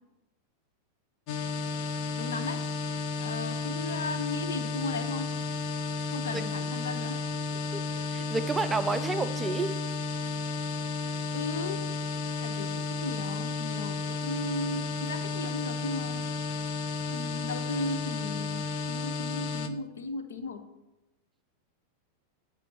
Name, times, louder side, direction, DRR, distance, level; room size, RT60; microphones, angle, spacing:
sound 1, 1.3-19.7, left 4 dB, 45° left, 0.7 m, -33 dB
voice 1, 2.2-2.6 3.2-5.3 6.1-7.2 11.3-11.8 12.4-16.2 17.1-18.6 18.9-20.6, left 3 dB, 65° left, 9 dB, 0.9 m, -36 dB
voice 2, 7.5-9.8, right 3 dB, 15° right, 10 dB, 0.4 m, -31 dB
15.0 x 6.1 x 3.0 m, 0.97 s
figure-of-eight pair, 90°, 0 cm